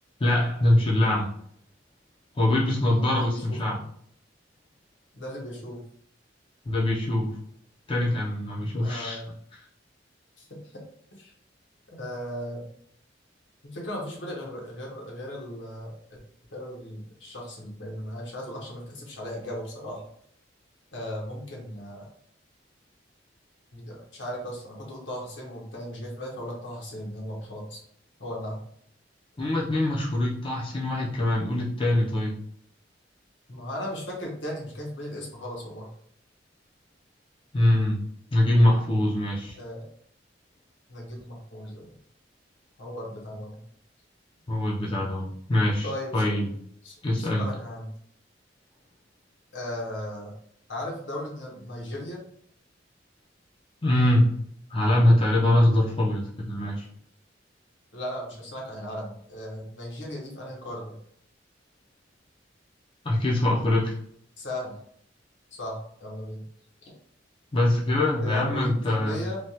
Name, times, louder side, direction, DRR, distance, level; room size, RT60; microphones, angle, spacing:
voice 1, 0.2-1.3 2.4-3.8 6.7-7.3 7.9-9.2 29.4-32.3 37.5-38.0 38.3-39.6 44.5-46.5 47.0-47.4 53.8-54.3 54.7-56.9 63.0-64.0 67.5-69.2, left 1 dB, 30° left, -4 dB, 0.5 m, -23 dB
voice 2, 2.8-3.8 5.1-5.8 8.8-9.3 10.4-10.8 11.2-11.3 11.9-12.7 13.6-16.2 16.5-20.1 20.9-22.1 23.7-27.8 28.2-28.6 33.5-35.9 39.6-39.8 40.9-41.9 42.8-43.6 45.8-46.2 46.8-47.9 49.5-50.3 50.7-52.2 57.9-61.0 64.4-64.8 65.5-66.4 68.2-69.4, left 1 dB, 80° left, -1 dB, 1.0 m, -37 dB
3.2 x 2.2 x 2.8 m, 0.65 s
head